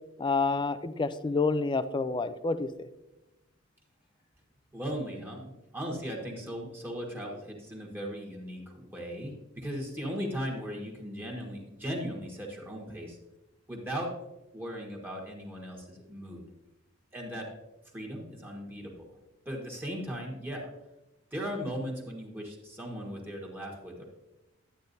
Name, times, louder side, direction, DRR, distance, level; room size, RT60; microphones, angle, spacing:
voice 1, 0.2-2.9, left 3 dB, 25° left, 13 dB, 0.4 m, -28 dB
voice 2, 4.7-13.2 13.7-14.1 14.5-16.4 17.1-17.5 17.9-19.0 19.4-20.7 21.3-24.0, equal, 10° right, -2 dB, 1.4 m, -37 dB
11.5 x 8.6 x 2.7 m, 0.98 s
head